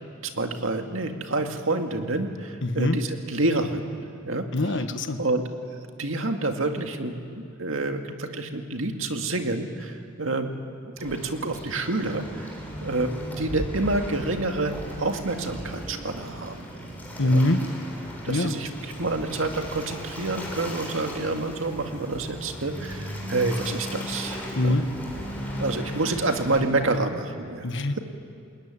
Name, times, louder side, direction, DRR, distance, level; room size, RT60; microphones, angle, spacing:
voice 1, 0.3-4.0 4.2-4.5 5.2-5.4 6.0-10.5 10.8-12.5 12.8-14.7 15.0-16.6 17.2-17.4 18.2-18.7 19.0-24.8 25.6-28.0, right 2 dB, 70° right, 5 dB, 2.1 m, -28 dB
voice 2, 2.6-3.0 4.5-5.2 17.2-17.6 18.3-18.6 24.5-24.8 27.6-28.0, left 1 dB, 65° left, 8 dB, 1.4 m, -23 dB
Waves surf, 11.0-26.6, equal, 10° left, 5.9 m, -36 dB
27.5 x 21.0 x 9.9 m, 2.3 s
head